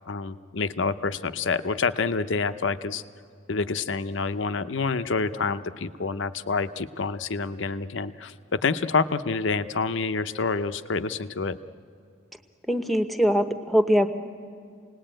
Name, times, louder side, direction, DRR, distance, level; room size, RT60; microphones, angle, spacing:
voice 1, 0.1-3.0 3.5-11.6, left 4 dB, 70° left, 11 dB, 0.7 m, -27 dB
voice 2, 12.7-14.1, equal, ahead, 8 dB, 0.9 m, -22 dB
28.0 x 19.5 x 8.9 m, 2.2 s
head